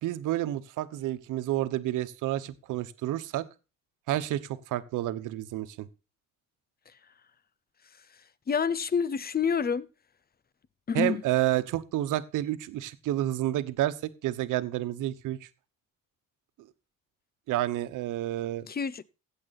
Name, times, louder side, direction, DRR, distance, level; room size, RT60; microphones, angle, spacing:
voice 1, 0.0-3.4 4.1-5.9 10.9-15.5 17.5-18.7, right 14 dB, 90° right, 1.1 m, -30 dB
voice 2, 8.5-9.9 10.9-11.2 18.7-19.0, left 6 dB, 30° left, 0.8 m, -27 dB
15.5 x 7.6 x 4.1 m
cardioid pair, 90°, 30 cm